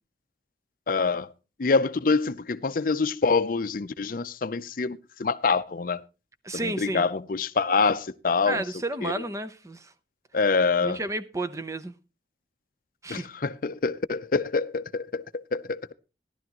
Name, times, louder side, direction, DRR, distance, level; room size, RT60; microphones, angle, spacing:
voice 1, 0.9-1.3 1.6-6.0 6.5-8.6 9.0-9.1 10.3-11.0 13.1-15.9, left 4 dB, 50° left, 0.5 m, -26 dB
voice 2, 6.4-7.1 8.5-9.9 10.8-11.9 13.0-13.3, right 2 dB, 20° right, 0.7 m, -32 dB
15.0 x 11.5 x 2.9 m
head